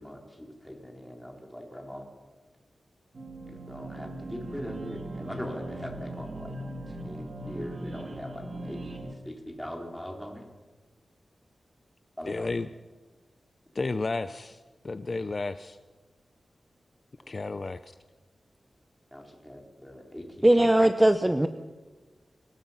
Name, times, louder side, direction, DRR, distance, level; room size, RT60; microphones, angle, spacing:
voice 1, 0.0-2.0 3.5-6.6 6.9-10.5 12.2-12.5 19.1-20.6, equal, 5° left, 1 dB, 3.7 m, -41 dB
sound 1, 3.1-9.1, right 1 dB, 50° right, 2.4 m, -39 dB
voice 2, 12.3-12.7 13.7-14.6 14.8-15.8 17.3-17.8, left 3 dB, 35° left, 11 dB, 0.6 m, -32 dB
voice 3, 20.4-21.5, right 1 dB, 10° right, 9 dB, 0.7 m, -20 dB
24.0 x 20.0 x 5.6 m, 1.3 s
wide cardioid pair, 145°, 0 cm